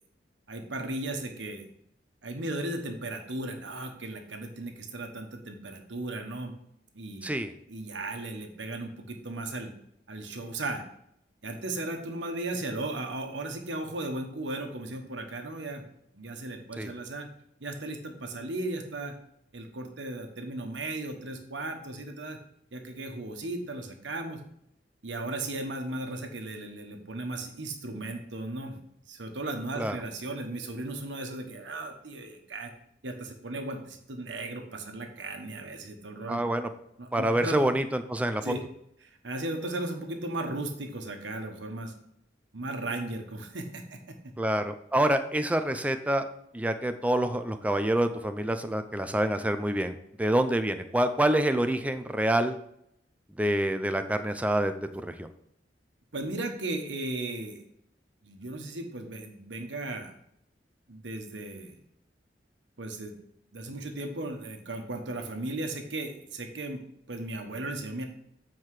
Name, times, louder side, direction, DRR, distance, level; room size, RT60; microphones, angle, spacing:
voice 1, 0.5-1.7 2.2-6.5 6.9-7.2 7.7-9.7 10.1-10.8 11.4-15.8 16.1-17.3 17.6-19.1 19.5-22.4 22.7-24.4 25.0-28.8 29.1-32.7 33.0-36.4 37.0-37.6 38.4-38.6 39.2-41.9 42.5-44.2 56.1-57.6 58.2-60.1 60.9-61.8 62.8-63.1 63.5-66.8 67.1-68.0, right 2 dB, 80° right, 4 dB, 1.2 m, -36 dB
voice 2, 7.2-7.5 16.8-16.9 29.8-30.0 36.3-36.7 37.1-38.5 44.4-46.2 46.5-52.6 53.4-54.7 55.0-55.3, right 1 dB, 10° right, 8 dB, 0.5 m, -27 dB
7.8 x 4.6 x 4.8 m, 0.74 s
head